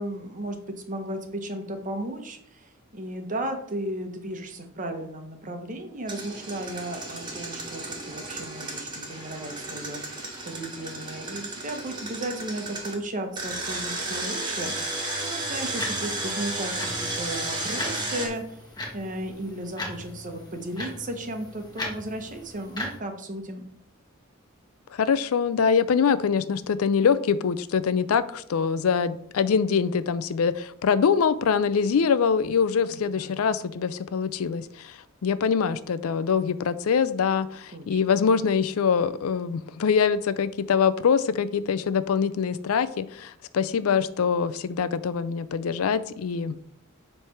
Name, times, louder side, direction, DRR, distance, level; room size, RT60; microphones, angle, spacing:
voice 1, 0.0-18.6 18.9-23.6 32.9-33.3 37.7-38.0, right 1 dB, 40° right, 1.0 m, -35 dB
Engine, 6.1-12.9 13.4-18.3, right 2 dB, 20° right, 1.6 m, -33 dB
sound 1, 15.4-23.0, left 1 dB, 20° left, 1.5 m, -39 dB
voice 2, 24.9-46.7, left 6 dB, 90° left, 0.4 m, -24 dB
7.4 x 3.3 x 5.7 m
head